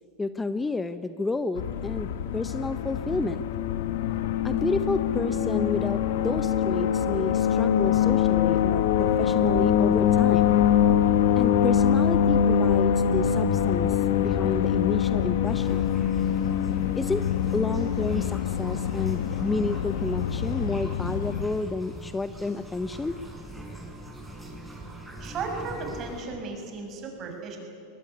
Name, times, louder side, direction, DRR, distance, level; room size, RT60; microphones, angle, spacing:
voice 1, 0.2-3.4 4.4-10.6 11.3-15.8 17.0-17.2 17.5-23.2, left 3 dB, 10° left, 12 dB, 0.7 m, -30 dB
sound 1, 1.6-21.4, left 9 dB, 75° left, 1.4 m, -24 dB
sound 2, 15.4-26.2, right 1 dB, 5° right, 6.0 m, -42 dB
voice 2, 25.2-27.6, right 4 dB, 40° right, 3 dB, 6.3 m, -35 dB
22.0 x 20.0 x 9.7 m, 2.5 s
hypercardioid pair, 115°, 0 cm